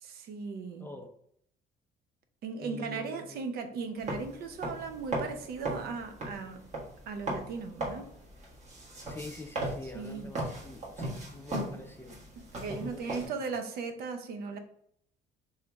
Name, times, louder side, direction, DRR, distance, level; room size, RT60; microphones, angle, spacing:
voice 1, 0.0-0.9 2.4-6.6 7.1-8.1 9.8-10.3 12.4-14.6, right 5 dB, 65° right, 0.6 m, -37 dB
voice 2, 0.8-1.1 2.6-3.4 9.1-12.2 12.6-13.3, left 2 dB, 15° left, 0.5 m, -45 dB
sound 1, 4.0-13.3, right 1 dB, 45° right, 1.4 m, -38 dB
3.2 x 3.0 x 3.4 m
cardioid pair, 110°, 17 cm